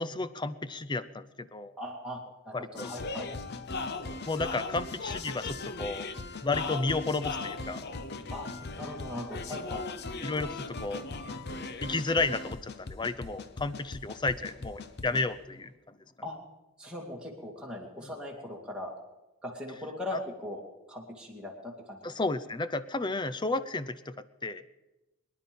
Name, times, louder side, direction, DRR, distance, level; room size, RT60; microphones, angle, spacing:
voice 1, 0.0-1.7 2.5-2.9 4.3-6.1 6.4-7.8 10.2-11.0 11.8-16.0 20.1-20.2 22.0-24.6, left 3 dB, 20° left, 14 dB, 0.5 m, -32 dB
voice 2, 1.8-3.3 8.3-8.5 8.8-9.8 16.2-16.4 16.8-18.9 19.4-20.6 20.9-22.0, left 1 dB, 5° right, -2 dB, 2.4 m, -39 dB
sound 1, 2.8-15.3, left 3 dB, 45° left, 0.8 m, -38 dB
23.5 x 10.5 x 5.4 m, 1.1 s
head